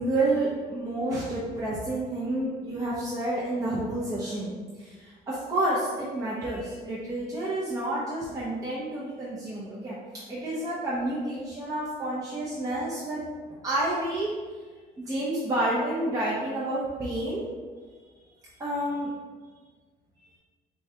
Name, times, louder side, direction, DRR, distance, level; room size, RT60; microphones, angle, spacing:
voice 1, 0.0-4.5 4.8-14.3 15.0-17.4 18.6-19.1, right 1 dB, 20° right, -8 dB, 0.7 m, -29 dB
4.5 x 2.3 x 2.8 m, 1.4 s
cardioid pair, 110°, 17 cm